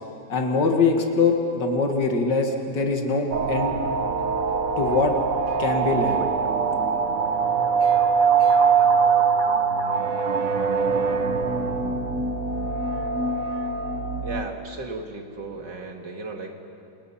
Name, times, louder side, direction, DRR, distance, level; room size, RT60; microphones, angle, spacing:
voice 1, 0.3-3.8 4.8-5.1 5.6-6.2, left 4 dB, 75° left, 3 dB, 2.6 m, -23 dB
sound 1, 3.3-14.5, right 5 dB, 50° right, 1.5 m, -23 dB
voice 2, 14.2-16.6, right 3 dB, 75° right, 2 dB, 2.9 m, -35 dB
28.5 x 28.5 x 5.8 m, 2.7 s
omnidirectional pair, 1.9 m